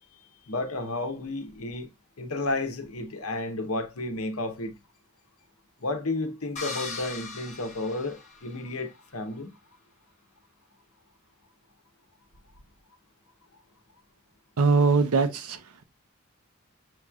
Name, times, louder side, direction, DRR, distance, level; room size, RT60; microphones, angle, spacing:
voice 1, 0.5-1.9 2.2-4.7 5.8-9.5, left 2 dB, 80° left, 0.9 m, -32 dB
sound 1, 6.6-8.8, left 4 dB, 30° left, 1.1 m, -39 dB
voice 2, 14.6-15.8, right 4 dB, 90° right, 0.6 m, -22 dB
6.2 x 3.0 x 2.3 m
head